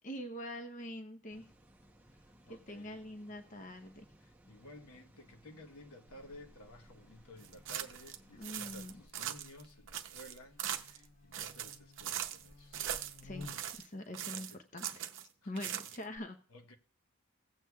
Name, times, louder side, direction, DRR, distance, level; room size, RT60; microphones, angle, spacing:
voice 1, 0.0-1.5 2.5-4.1 8.4-9.0 13.2-13.5 13.8-15.0 15.5-16.4, left 1 dB, 35° left, 0.7 m, -44 dB
sound 1, 1.3-9.1, right 1 dB, 5° right, 0.7 m, -63 dB
voice 2, 2.4-3.0 4.2-12.8 14.3-14.6 15.4-15.9 16.5-16.7, left 1 dB, 75° left, 1.1 m, -55 dB
Buzz, 6.1-13.9, left 2 dB, 55° left, 2.3 m, -56 dB
sound 2, 7.4-8.2 8.4-9.6 9.9-11.0 11.3-12.5 12.7-13.9 14.1-15.3 15.6-16.2, right 10 dB, 55° right, 0.6 m, -40 dB
17.0 x 7.9 x 2.3 m
head